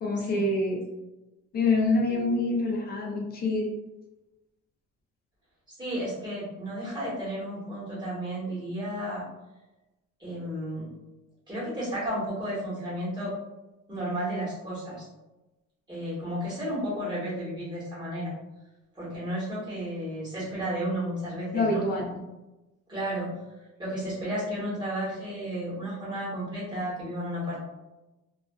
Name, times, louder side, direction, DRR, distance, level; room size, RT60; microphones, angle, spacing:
voice 1, 0.0-0.8 1.5-3.7 21.5-22.1, left 2 dB, 35° left, -1 dB, 0.5 m, -26 dB
voice 2, 5.8-9.2 10.2-10.8 11.5-13.3 13.9-15.0 15.9-18.3 18.9-21.8 22.9-23.3 23.8-27.6, equal, 15° right, -10 dB, 1.2 m, -32 dB
2.4 x 2.3 x 2.2 m, 1.0 s
cardioid pair, 155°, 29 cm